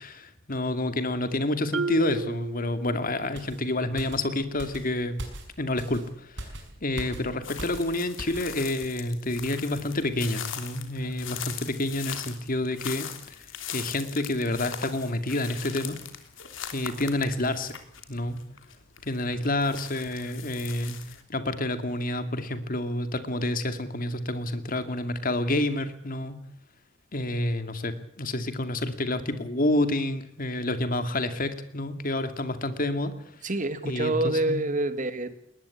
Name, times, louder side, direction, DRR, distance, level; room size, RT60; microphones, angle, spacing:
voice 1, 0.0-5.2 5.6-6.4 6.8-13.1 13.7-16.0 16.7-17.7 18.1-18.4 19.0-21.0 21.3-26.4 27.1-33.1 33.8-34.6, left 1 dB, 45° left, 9 dB, 2.4 m, -29 dB
Marimba xylophone, 1.7-3.5, right 4 dB, 85° right, 1.0 m, -33 dB
sound 1, 3.3-8.5 8.8-9.0, right 1 dB, 65° right, 6.4 m, -41 dB
sound 2, 7.4-21.2, left 9 dB, 80° left, 3.2 m, -40 dB
voice 2, 33.4-35.3, right 2 dB, 40° right, 10 dB, 2.2 m, -27 dB
21.5 x 20.0 x 8.5 m, 0.67 s
head